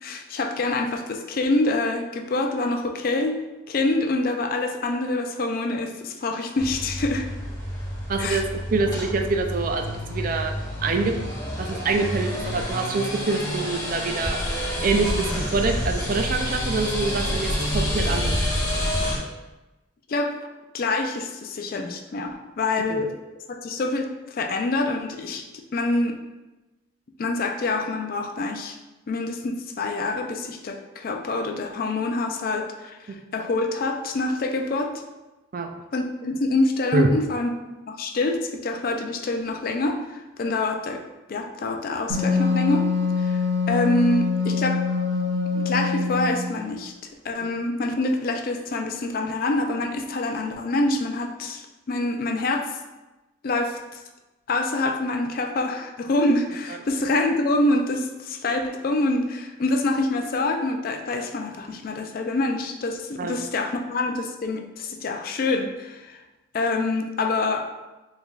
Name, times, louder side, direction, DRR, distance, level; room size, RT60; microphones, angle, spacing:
voice 1, 0.0-3.4 3.7-7.3 8.2-8.4 20.1-20.4 20.7-23.1 23.5-26.2 27.2-28.8 29.1-35.0 35.9-37.5 37.9-41.0 41.3-42.9 43.2-44.8 45.5-46.9 47.2-52.8 53.4-54.0 54.5-66.2 66.5-67.7, left 2 dB, 45° left, 4 dB, 0.3 m, -26 dB
sound 1, 6.6-19.2, equal, 15° left, 1.0 m, -28 dB
voice 2, 8.1-10.5 10.8-11.1 11.6-14.4 14.8-18.3 22.9-23.0 35.5-35.7 36.9-37.1 47.4-47.5 63.2-63.4, right 3 dB, 45° right, 4 dB, 0.3 m, -25 dB
Wind instrument woodwind instrument, 42.1-46.5, left 4 dB, 70° right, 0.9 m, -24 dB
4.5 x 3.4 x 2.3 m, 1.1 s
head